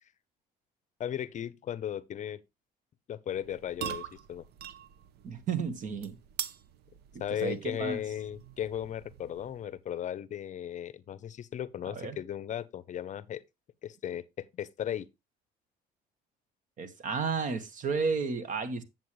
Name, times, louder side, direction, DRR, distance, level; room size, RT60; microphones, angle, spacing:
voice 1, 1.0-2.4 3.1-4.4 7.2-13.4 13.8-15.1, left 10 dB, 45° left, 0.6 m, -36 dB
sound 1, 3.4-9.8, right 10 dB, 75° right, 0.7 m, -44 dB
voice 2, 5.2-6.2 7.1-8.0 11.9-12.2 16.8-18.8, right 5 dB, 50° right, 1.5 m, -32 dB
9.4 x 7.4 x 3.1 m
cardioid pair, 110°, 17 cm